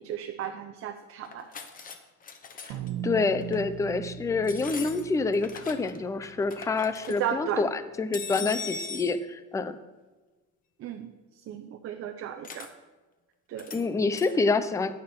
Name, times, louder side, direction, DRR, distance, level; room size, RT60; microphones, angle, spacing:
voice 1, 0.0-1.5 7.1-7.6 8.4-8.5 10.8-11.1 11.5-12.7 13.5-13.7, right 10 dB, 40° right, 6 dB, 0.8 m, -34 dB
sound 1, 1.2-2.9 3.4-3.6 4.4-6.0 6.2-7.2 8.1-9.1 12.4-12.7 13.6-13.8 14.1-14.4, left 5 dB, 25° left, 1.0 m, -39 dB
sound 2, 2.7-7.3, right 9 dB, 75° right, 1.3 m, -39 dB
voice 2, 3.0-9.8 13.7-14.9, left 4 dB, 10° left, 12 dB, 0.4 m, -27 dB
15.5 x 9.6 x 4.4 m, 1.2 s
cardioid pair, 165°, 33 cm